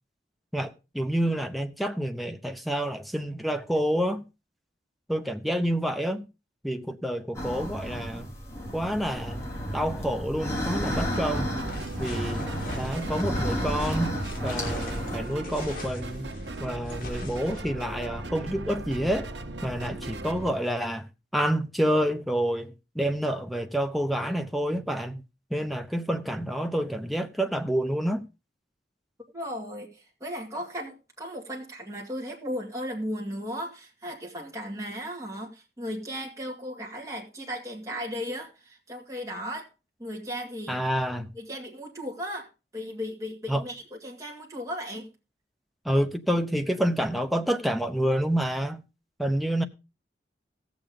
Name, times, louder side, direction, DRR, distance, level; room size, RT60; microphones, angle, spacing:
voice 1, 0.5-4.2 5.1-6.2 6.6-8.3 8.7-9.5 9.7-11.5 12.0-12.5 12.8-14.2 14.4-16.3 16.6-19.3 19.6-21.1 21.3-25.2 25.5-28.2 40.7-41.3 43.5-43.6 45.8-48.8 49.2-49.6, equal, ahead, 0.7 m, -28 dB
sound 1, 7.3-15.2, equal, 15° left, 3.0 m, -32 dB
sound 2, 10.8-20.5, right 2 dB, 90° right, 1.2 m, -38 dB
sound 3, 11.6-17.6, left 2 dB, 50° left, 2.7 m, -42 dB
voice 2, 29.3-39.7 40.0-40.8 41.3-45.1, equal, 20° right, 2.2 m, -36 dB
17.0 x 7.0 x 3.8 m
head